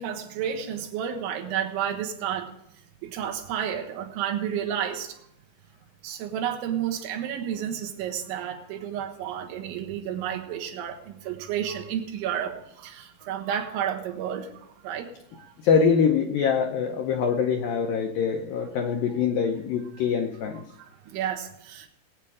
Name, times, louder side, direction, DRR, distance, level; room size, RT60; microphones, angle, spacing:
voice 1, 0.0-2.5 3.0-5.2 6.0-15.5 18.8-18.9 20.8-21.9, right 9 dB, 90° right, 3 dB, 3.8 m, -31 dB
voice 2, 15.6-20.6, left 6 dB, 85° left, 5 dB, 2.0 m, -24 dB
20.0 x 8.8 x 4.9 m, 0.81 s
omnidirectional pair, 5.2 m